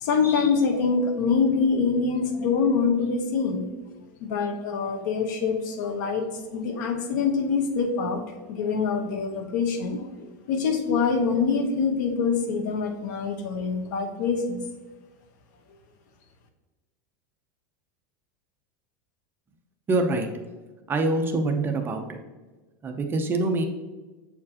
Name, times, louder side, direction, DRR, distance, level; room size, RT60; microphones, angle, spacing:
voice 1, 0.0-3.7 4.2-6.3 6.5-8.2 8.5-10.1 10.5-14.6, left 5 dB, 70° left, 5 dB, 1.0 m, -25 dB
voice 2, 19.9-20.3 20.9-22.2 22.8-23.6, right 2 dB, 20° right, 4 dB, 0.6 m, -25 dB
7.4 x 4.4 x 2.9 m, 1.2 s
supercardioid pair, 145°, 10 cm